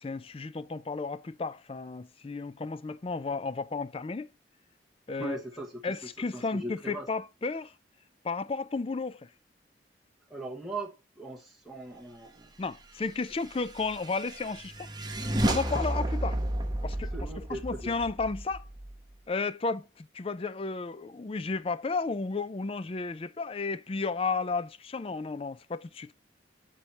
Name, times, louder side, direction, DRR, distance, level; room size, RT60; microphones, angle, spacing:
voice 1, 0.0-4.3 5.1-5.4 5.8-7.7 8.2-9.3 12.6-14.9 15.4-16.4 16.8-17.1 17.5-18.7 19.3-26.1, left 4 dB, 30° left, 0.4 m, -33 dB
voice 2, 5.2-5.9 6.3-7.1 10.3-12.5 17.1-17.9, right 2 dB, ahead, 1.0 m, -39 dB
sound 1, 13.3-18.9, right 1 dB, 20° right, 0.9 m, -32 dB
8.0 x 4.6 x 4.1 m
head